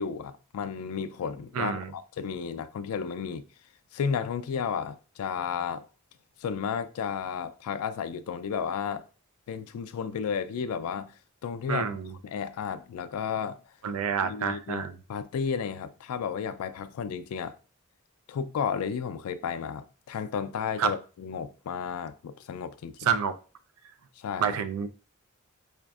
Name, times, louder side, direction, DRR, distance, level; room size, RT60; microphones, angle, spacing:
voice 1, 0.0-3.5 3.9-5.9 6.4-9.0 9.5-11.1 11.4-12.0 12.2-13.6 14.2-17.5 18.3-23.1 24.2-24.6, left 6 dB, 85° left, 0.3 m, -33 dB
voice 2, 1.6-1.9 11.7-12.1 13.8-14.9 20.8-20.9 23.1-23.4 24.4-24.9, right 7 dB, 80° right, 0.4 m, -28 dB
4.9 x 2.4 x 2.3 m
head